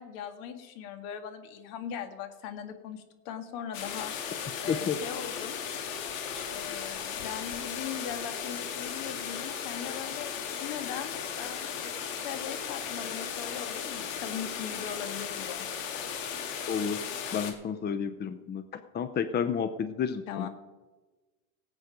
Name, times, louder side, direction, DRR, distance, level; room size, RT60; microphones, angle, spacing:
voice 1, 0.0-4.1 4.6-5.6 6.5-15.7 20.3-20.5, left 8 dB, 60° left, 8 dB, 1.9 m, -40 dB
sound 1, 3.7-17.5, left 7 dB, 80° left, 2.3 m, -36 dB
voice 2, 4.7-5.0 16.7-17.0 17.3-18.6 18.9-20.5, left 7 dB, 25° left, 11 dB, 0.7 m, -30 dB
17.5 x 8.2 x 5.2 m, 1.2 s
supercardioid pair, 100°, 39 cm